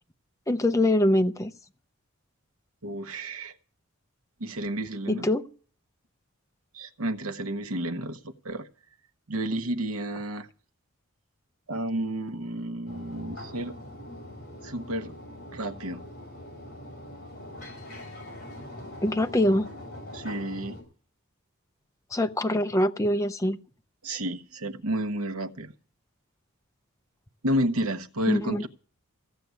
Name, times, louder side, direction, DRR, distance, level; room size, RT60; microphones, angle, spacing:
voice 1, 0.5-1.5 5.1-5.4 19.0-19.7 22.1-23.6 28.3-28.7, left 1 dB, 15° left, 0.6 m, -24 dB
voice 2, 2.8-3.5 4.4-5.3 6.7-8.7 9.3-10.5 11.7-13.7 14.6-15.2 15.5-16.0 20.1-20.8 24.0-25.7 27.4-28.7, right 1 dB, 75° right, 1.0 m, -31 dB
sound 1, 12.9-20.8, left 1 dB, 45° left, 6.5 m, -42 dB
15.5 x 6.7 x 9.4 m
head